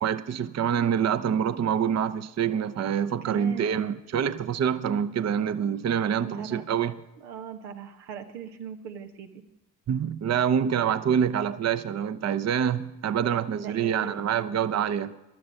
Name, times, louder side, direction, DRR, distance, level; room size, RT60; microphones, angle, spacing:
voice 1, 0.0-6.9 9.9-15.1, right 8 dB, 35° right, 0.7 m, -26 dB
voice 2, 3.2-3.8 6.2-6.6 7.2-9.4 13.6-14.2, right 7 dB, 85° right, 1.1 m, -39 dB
15.5 x 12.0 x 5.3 m
hypercardioid pair, 45°, 49 cm